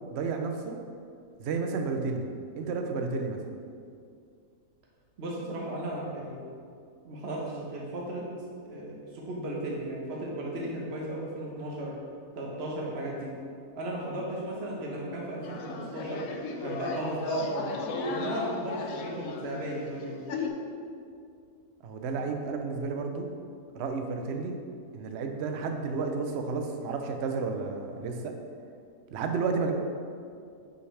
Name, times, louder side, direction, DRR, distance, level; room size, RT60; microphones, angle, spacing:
voice 1, 0.1-0.8 1.4-2.3 2.6-3.4 21.8-23.3 23.7-24.6 24.9-28.3 29.1-29.7, right 4 dB, 60° right, 4 dB, 0.7 m, -31 dB
voice 2, 5.2-6.4 7.0-8.2 8.6-11.9 12.3-13.3 13.7-16.2 16.6-20.2, right 1 dB, 45° right, -3 dB, 1.3 m, -35 dB
sound 1, 15.4-20.5, left 4 dB, 70° left, 1.0 m, -36 dB
8.2 x 5.2 x 3.3 m, 2.3 s
omnidirectional pair, 1.7 m